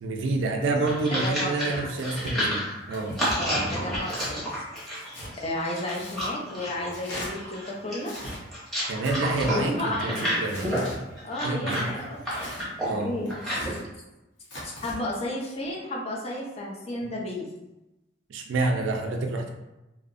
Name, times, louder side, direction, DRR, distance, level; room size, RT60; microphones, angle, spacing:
voice 1, 0.0-3.2 8.9-10.9 11.4-11.9 12.8-13.1 18.3-19.5, right 3 dB, 90° right, 2 dB, 0.4 m, -28 dB
sound 1, 0.6-13.7, equal, ahead, 0.8 m, -31 dB
voice 2, 1.1-1.9 3.4-4.6 5.4-8.1 9.5-10.3 11.2-13.9 14.6-17.5, left 1 dB, 35° left, -3 dB, 0.5 m, -33 dB
Tearing, 2.0-2.3 2.9-3.4 4.0-4.3 4.8-5.3 5.9-6.3 6.9-7.3 8.0-8.4 9.0-9.5 10.1-11.0 11.7-12.7 13.2-13.8 14.4-15.0, equal, 75° left, 0.8 m, -40 dB
2.6 x 2.0 x 2.5 m, 0.98 s
head